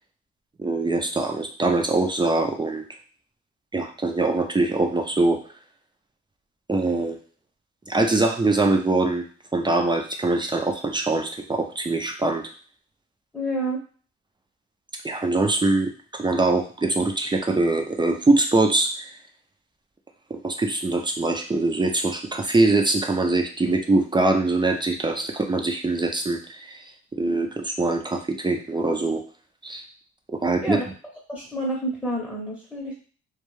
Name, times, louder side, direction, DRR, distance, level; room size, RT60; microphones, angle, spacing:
voice 1, 0.6-2.8 3.7-5.4 6.7-7.2 7.9-9.2 9.5-12.4 15.0-19.1 20.3-26.8 27.1-29.2 29.6-29.8 30.4-30.8, right 2 dB, 15° right, 3 dB, 0.4 m, -23 dB
voice 2, 13.3-13.8 30.6-30.8 31.3-33.0, right 1 dB, 5° left, -3 dB, 0.8 m, -29 dB
2.3 x 2.2 x 3.1 m, 0.41 s
cardioid pair, 75°, 29 cm